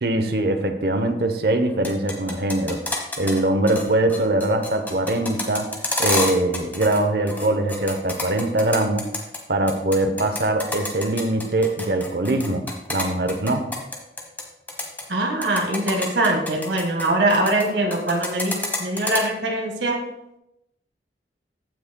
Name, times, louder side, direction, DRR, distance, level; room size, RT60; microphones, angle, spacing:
voice 1, 0.0-5.7 6.0-9.1 9.5-12.6 12.9-13.7, right 1 dB, 65° right, 7 dB, 0.9 m, -22 dB
sound 1, 1.7-3.4 3.7-7.0 7.3-9.4 9.7-14.4 14.7-15.0 15.4-17.7 17.9-19.2, left 2 dB, 10° left, 1.1 m, -28 dB
voice 2, 15.1-20.0, right 1 dB, 80° right, 2 dB, 1.6 m, -22 dB
15.0 x 6.2 x 2.3 m, 0.87 s
head